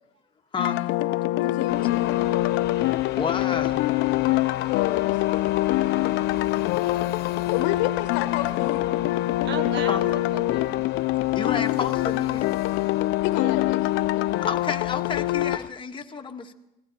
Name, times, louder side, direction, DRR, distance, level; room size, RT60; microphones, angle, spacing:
sound 1, 0.6-15.6, left 17 dB, 70° left, 0.5 m, -24 dB
voice 1, 1.4-2.4 4.7-5.2 7.5-8.9 13.2-14.5, left 14 dB, 85° left, 8 dB, 0.9 m, -31 dB
sound 2, 1.7-15.7, left 9 dB, 50° left, 1.1 m, -38 dB
voice 2, 3.1-3.8 9.9-10.0 11.3-12.5 14.4-16.5, left 5 dB, 25° left, 4 dB, 1.2 m, -31 dB
voice 3, 5.7-6.3 6.8-7.2 9.4-10.8 13.3-13.5, right 5 dB, 55° right, 9 dB, 1.4 m, -38 dB
25.0 x 17.0 x 2.9 m, 0.91 s
cardioid pair, 110°, 21 cm